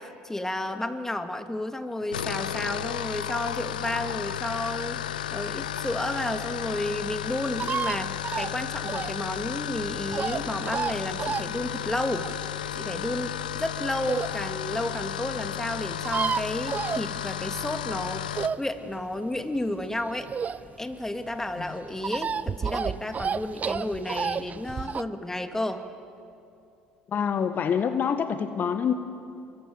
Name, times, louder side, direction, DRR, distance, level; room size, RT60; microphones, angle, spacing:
voice 1, 0.0-5.0 5.3-12.3 12.8-18.2 18.6-20.3 20.8-25.9, left 1 dB, 10° left, 7 dB, 2.3 m, -32 dB
sound 1, 2.0-18.6, left 10 dB, 85° left, 0.7 m, -33 dB
sound 2, 5.8-14.4 14.9-15.0 15.2-15.3 15.4-15.5 15.7-17.6 17.9-20.9 21.3-25.0, right 6 dB, 35° right, 0.7 m, -31 dB
voice 2, 27.1-28.9, left 7 dB, 45° left, 8 dB, 1.5 m, -26 dB
28.5 x 24.0 x 7.9 m, 2.6 s
hypercardioid pair, 60°, 4 cm